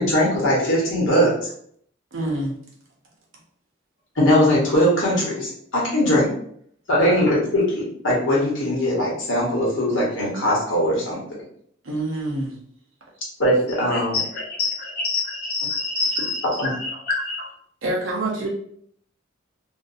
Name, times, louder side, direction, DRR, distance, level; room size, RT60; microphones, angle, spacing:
voice 1, 0.0-1.5 4.1-6.3 6.9-11.2 13.4-14.1 16.6-16.7, equal, 85° left, -4 dB, 1.0 m, -20 dB
voice 2, 2.1-2.5 11.8-12.6 15.9-16.2 16.5-16.6 17.8-18.5, right 2 dB, 85° right, -2 dB, 0.8 m, -26 dB
voice 3, 13.9-17.5, left 3 dB, 50° left, -1 dB, 0.7 m, -27 dB
2.6 x 2.2 x 2.5 m, 0.64 s
head